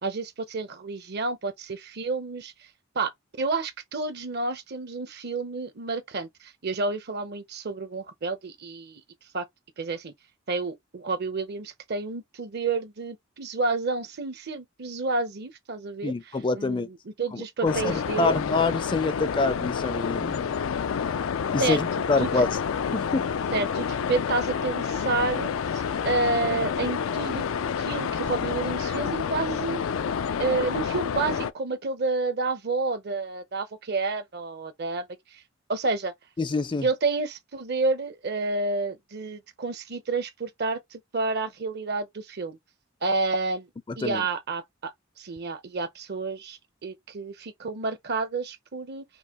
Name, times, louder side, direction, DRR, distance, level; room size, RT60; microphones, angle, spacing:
voice 1, 0.0-2.5 2.9-3.1 3.4-9.0 9.3-9.4 9.8-10.1 10.5-16.1 16.5-18.4 21.6-22.4 23.5-27.4 27.8-29.8 30.4-35.1 35.3-35.4 35.7-36.1 36.8-42.6 43.0-43.7 44.0-44.9 45.2-49.0, right 3 dB, 55° right, 0.8 m, -30 dB
voice 2, 16.0-16.9 17.3-20.5 21.5-22.5 22.9-23.3 36.4-36.9 44.0-44.2, left 3 dB, 25° left, 0.4 m, -26 dB
sound 1, 17.7-31.5, left 6 dB, 85° left, 0.4 m, -29 dB
5.4 x 2.2 x 3.0 m
head